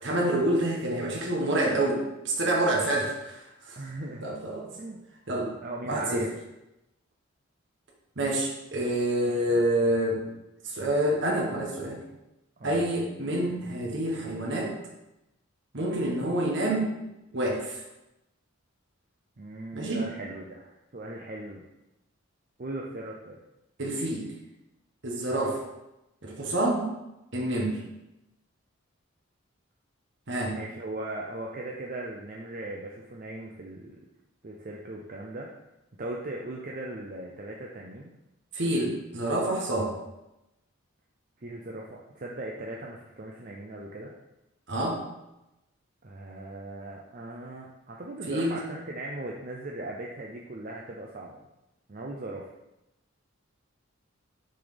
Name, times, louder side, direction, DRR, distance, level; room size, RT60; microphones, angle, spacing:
voice 1, 0.0-3.4 3.7-3.8 4.2-4.7 5.3-5.5 5.8-6.2 8.2-10.2 10.6-12.0 12.6-14.7 15.7-16.9 17.3-17.8 19.7-20.1 23.8-24.3 25.0-25.6 26.2-26.9 27.3-27.8 30.3-30.6 38.5-39.9 44.7-45.0 48.3-48.6, right 1 dB, 55° right, -2 dB, 1.4 m, -27 dB
voice 2, 3.8-4.2 4.7-5.0 5.6-6.3 9.2-9.6 12.6-12.8 19.4-21.6 22.6-23.4 30.5-34.0 34.4-35.5 36.0-38.1 41.4-44.1 46.0-51.4 51.9-52.5, right 2 dB, 40° right, -1 dB, 0.6 m, -38 dB
6.4 x 4.1 x 5.1 m, 0.94 s
head